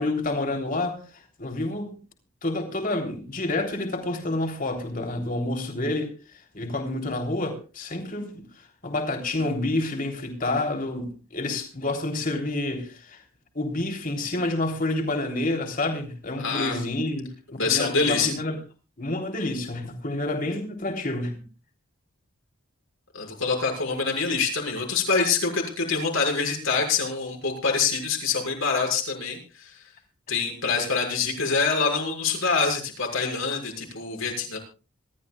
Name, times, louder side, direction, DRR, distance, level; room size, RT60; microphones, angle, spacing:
voice 1, 0.0-1.9 2.4-6.1 6.5-13.2 13.5-18.6 19.0-21.4, left 2 dB, 40° left, 3.4 m, -29 dB
voice 2, 16.4-16.7 17.6-18.3 23.1-29.8 30.3-34.6, left 4 dB, 70° left, 6.5 m, -25 dB
26.0 x 13.5 x 2.4 m
head